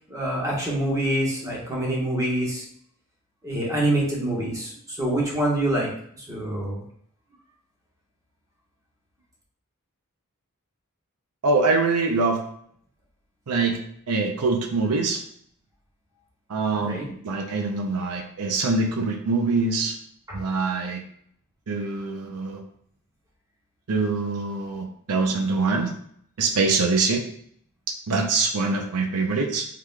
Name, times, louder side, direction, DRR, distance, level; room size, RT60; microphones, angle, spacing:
voice 1, 0.1-2.6 3.4-6.8 16.9-17.1 20.3-20.4, right 1 dB, 15° right, -4 dB, 1.2 m, -26 dB
voice 2, 11.4-12.4 13.5-13.8 14.1-15.2 16.5-19.9 20.3-21.0 21.7-22.6 23.9-25.9 26.4-27.2 28.1-29.7, right 3 dB, 90° right, 3 dB, 0.6 m, -24 dB
4.7 x 3.8 x 2.3 m, 0.65 s
head